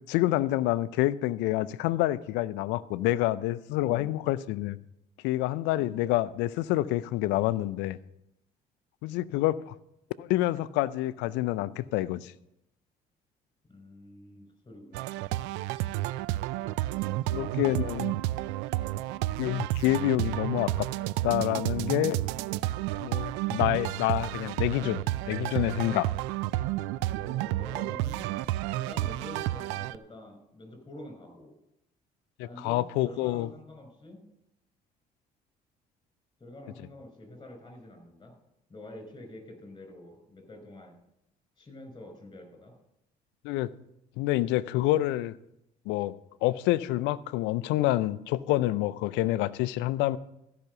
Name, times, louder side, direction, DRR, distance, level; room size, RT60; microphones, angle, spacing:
voice 1, 0.1-4.8 5.2-8.0 9.0-9.7 10.2-12.3 17.3-18.1 19.4-20.9 21.2-22.2 23.0-26.1 32.6-33.5 43.4-43.7 44.2-45.3 45.9-46.2 46.4-50.2, left 16 dB, 80° left, 17 dB, 0.5 m, -27 dB
voice 2, 3.8-4.2 5.8-6.1 13.7-15.2 17.2-17.9 18.9-19.2 27.2-28.2 28.7-31.5 32.4-34.2 36.4-38.3 38.7-40.9 41.6-42.7, left 1 dB, 25° left, 5 dB, 5.2 m, -47 dB
sound 1, 14.9-30.0, right 16 dB, 80° right, 0.4 m, -31 dB
14.5 x 5.9 x 6.7 m, 0.83 s
hypercardioid pair, 60°, 18 cm